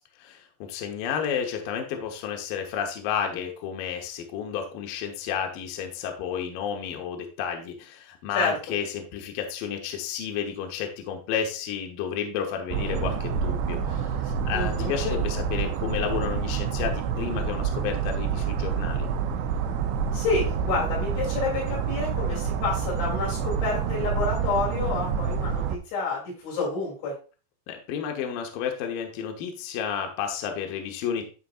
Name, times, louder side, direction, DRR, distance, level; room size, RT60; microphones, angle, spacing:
voice 1, 0.2-19.1 27.7-31.2, left 8 dB, 70° left, 3 dB, 2.2 m, -31 dB
sound 1, 12.7-25.8, right 6 dB, 80° right, 2.6 m, -28 dB
voice 2, 14.5-14.9 20.1-27.1, left 3 dB, 90° left, -4 dB, 5.2 m, -29 dB
11.5 x 4.1 x 2.4 m, 0.35 s
omnidirectional pair, 5.1 m